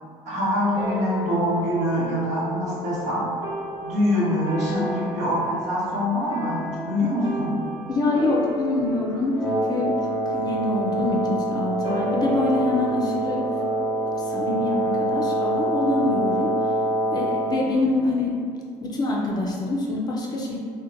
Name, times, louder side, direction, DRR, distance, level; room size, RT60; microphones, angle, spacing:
voice 1, 0.3-3.3 3.8-7.6, equal, 65° right, -7 dB, 1.0 m, -24 dB
sound 1, 0.8-15.5, left 2 dB, 35° right, 0.6 m, -35 dB
voice 2, 7.9-13.5 14.2-16.6 17.1-18.4 18.8-20.6, left 2 dB, 30° left, -3 dB, 0.4 m, -25 dB
Wind instrument woodwind instrument, 9.3-17.6, right 1 dB, 5° left, 1.0 m, -25 dB
2.7 x 2.2 x 2.5 m, 2.1 s
cardioid pair, 110°, 13 cm